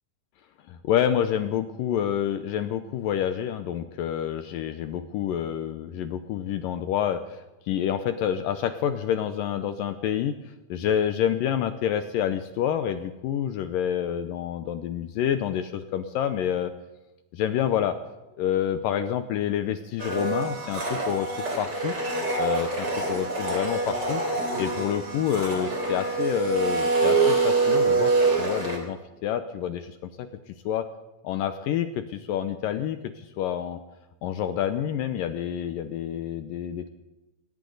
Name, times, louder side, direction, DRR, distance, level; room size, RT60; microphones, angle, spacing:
voice 1, 0.7-16.7 17.3-18.0 18.4-21.3 21.6-22.0 22.4-22.7 23.1-24.2 24.6-30.3 30.7-30.9 31.2-33.8 34.2-36.9, left 9 dB, 75° left, 10 dB, 2.2 m, -28 dB
Domestic sounds home sounds, 20.0-28.8, right 3 dB, 30° right, 3.6 m, -25 dB
18.0 x 18.0 x 4.0 m, 1.0 s
omnidirectional pair, 4.4 m